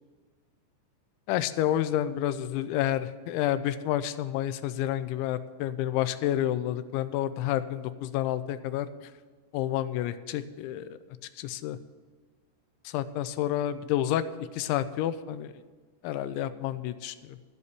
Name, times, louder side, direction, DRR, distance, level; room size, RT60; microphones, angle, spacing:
voice 1, 1.3-8.9 9.5-10.9 11.4-11.8 12.9-14.2 14.5-15.5 16.0-17.4, left 12 dB, 90° left, 13 dB, 3.0 m, -29 dB
14.0 x 5.4 x 8.2 m, 1.5 s
omnidirectional pair, 5.3 m